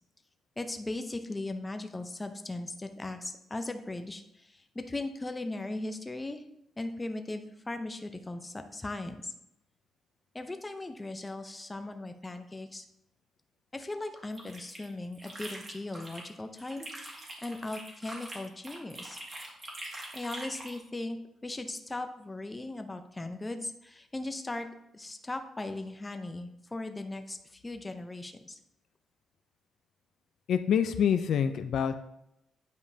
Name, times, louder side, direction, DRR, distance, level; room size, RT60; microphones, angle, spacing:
voice 1, 0.6-6.4 6.8-9.3 10.3-12.8 13.7-19.2 20.1-21.2 21.4-24.7 24.9-28.6, left 2 dB, 15° left, 7 dB, 0.6 m, -38 dB
sound 1, 14.1-16.3 16.6-20.8, right 1 dB, 30° right, 1.7 m, -44 dB
voice 2, 30.5-31.9, left 8 dB, 70° left, 9 dB, 0.4 m, -26 dB
9.4 x 5.1 x 2.8 m, 0.81 s
cardioid pair, 120°, 0 cm